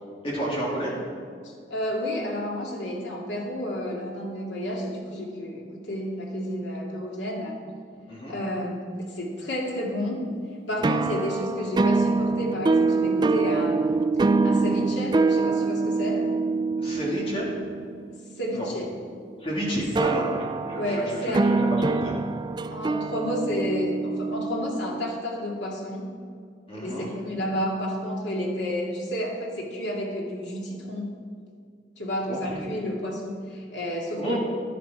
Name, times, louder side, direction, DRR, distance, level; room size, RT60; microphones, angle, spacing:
voice 1, 0.2-0.9 8.1-8.4 10.9-11.1 16.8-17.4 18.5-18.7 19.4-20.4 20.6-22.1 26.7-27.1 32.3-32.6 34.2-34.4, equal, 30° left, -5 dB, 3.2 m, -30 dB
voice 2, 1.4-7.6 8.3-10.2 10.7-14.0 14.4-16.3 18.4-18.9 20.0-20.1 20.7-21.5 22.7-26.1 26.7-31.2 32.0-34.4, left 1 dB, 90° left, -1 dB, 2.4 m, -31 dB
sound 1, 10.8-18.7 20.0-25.2, right 3 dB, 25° right, 0.3 m, -25 dB
11.5 x 11.0 x 4.7 m, 2.2 s
head